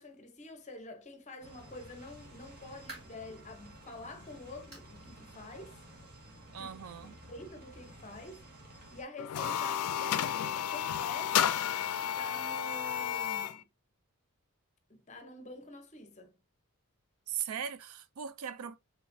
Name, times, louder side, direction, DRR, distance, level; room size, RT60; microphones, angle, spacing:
voice 1, 0.0-5.8 6.6-6.8 7.3-8.5 8.7-11.7 12.2-13.6 14.9-16.4, left 2 dB, 30° left, 0.8 m, -47 dB
sound 1, 1.4-9.0, right 1 dB, 45° right, 1.5 m, -53 dB
sound 2, 2.9-3.3 3.8-3.9 4.7-5.0 5.3-5.4 5.9-6.0 7.1-7.2, right 2 dB, 25° right, 3.0 m, -50 dB
voice 2, 6.5-7.2 17.3-18.8, right 8 dB, 70° right, 0.4 m, -39 dB
sound 3, 9.2-13.6, left 10 dB, 80° left, 0.4 m, -32 dB
4.8 x 3.4 x 2.6 m
head